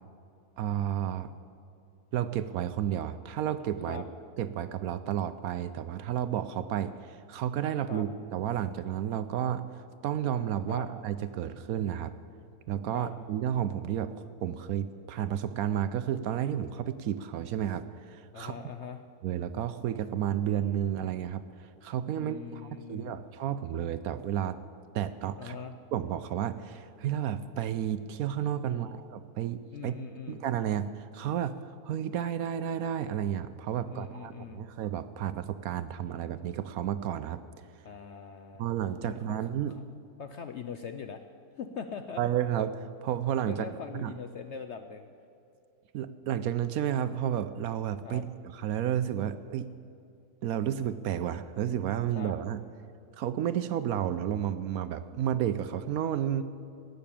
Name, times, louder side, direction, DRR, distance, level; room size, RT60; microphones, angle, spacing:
voice 1, 0.6-1.3 2.1-4.0 4.4-9.6 10.0-12.1 12.7-18.5 19.2-24.6 24.9-25.6 25.9-29.9 30.3-31.5 31.8-37.4 38.6-39.8 42.2-43.7 44.0-44.1 45.9-49.7 50.4-52.6 53.2-56.4, right 10 dB, 70° right, 12 dB, 0.9 m, -31 dB
voice 2, 18.3-19.0 22.2-23.2 25.4-25.7 28.7-28.9 29.7-30.4 33.8-34.6 37.8-38.8 39.0-39.4 40.2-41.2 41.6-42.2 43.5-45.1 48.0-48.2 52.1-52.3, left 6 dB, 65° left, 8 dB, 0.7 m, -41 dB
17.5 x 6.8 x 8.7 m, 2.6 s
omnidirectional pair, 1.7 m